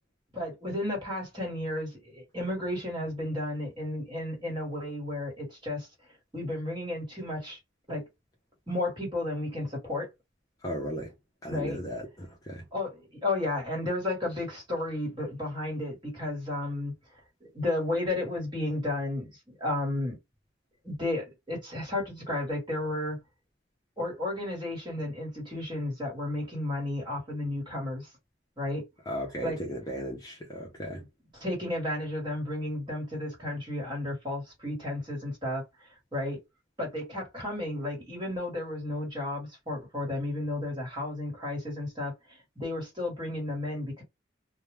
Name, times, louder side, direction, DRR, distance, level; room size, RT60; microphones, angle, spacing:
voice 1, 0.3-5.9 6.3-7.6 7.9-8.0 8.7-10.1 11.5-11.8 12.7-16.9 17.4-20.2 20.8-23.2 24.0-28.1 28.6-28.8 29.4-29.6 31.3-36.4 36.8-44.0, left 1 dB, 25° right, 1.3 m, -33 dB
voice 2, 10.6-11.1 11.4-12.6 29.1-31.0, equal, 20° left, 0.6 m, -36 dB
2.3 x 2.2 x 3.1 m
head